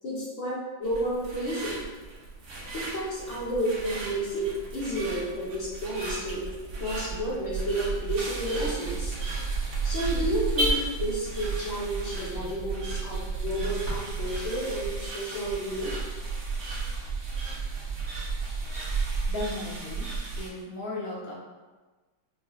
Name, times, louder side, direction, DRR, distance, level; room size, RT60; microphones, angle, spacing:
voice 1, 0.0-1.9 2.7-6.4 6.8-9.2 9.8-15.9, right 1 dB, 45° left, -6 dB, 1.3 m, -31 dB
sound 1, 0.8-20.5, right 4 dB, 55° right, 1.2 m, -34 dB
Car / Alarm, 4.7-13.9, equal, 35° right, 1.5 m, -38 dB
voice 2, 19.3-20.1 20.4-21.3, left 2 dB, 75° left, -5 dB, 0.5 m, -35 dB
5.8 x 2.4 x 2.4 m, 1.3 s
omnidirectional pair, 2.1 m